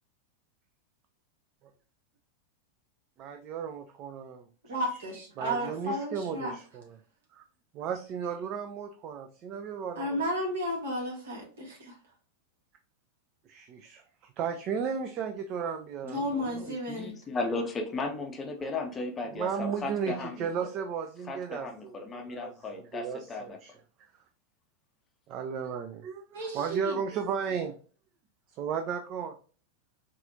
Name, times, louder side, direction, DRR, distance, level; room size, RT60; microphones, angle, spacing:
voice 1, 3.2-4.4 5.0-5.1 5.4-6.9 7.3-7.4 7.7-10.2 13.5-14.0 14.4-16.6 19.3-23.7 25.3-27.8 28.6-29.3, right 7 dB, 35° right, 7 dB, 0.3 m, -35 dB
voice 2, 4.7-6.6 9.9-12.0 16.1-17.2 26.3-27.0, equal, 60° right, 0 dB, 1.4 m, -33 dB
voice 3, 16.0-20.7 21.3-23.6, left 3 dB, 20° left, 4 dB, 0.5 m, -36 dB
4.0 x 2.4 x 2.6 m, 0.40 s
figure-of-eight pair, 90°, 0 cm